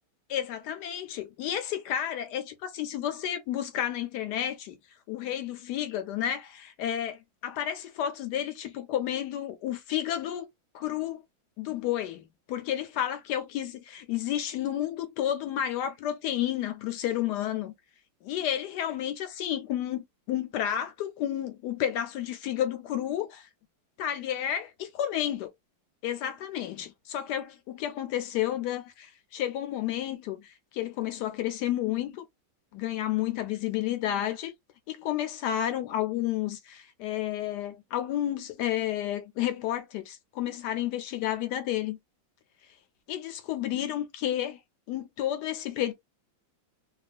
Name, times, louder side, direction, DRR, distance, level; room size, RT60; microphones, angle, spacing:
voice 1, 0.3-4.8 5.1-10.5 10.7-11.2 11.6-17.7 18.2-23.5 24.0-25.5 26.0-32.2 32.7-34.5 34.9-42.0 43.1-44.6 44.9-45.9, left 11 dB, 75° left, 1.0 m, -31 dB
3.0 x 2.3 x 2.4 m
omnidirectional pair, 2.1 m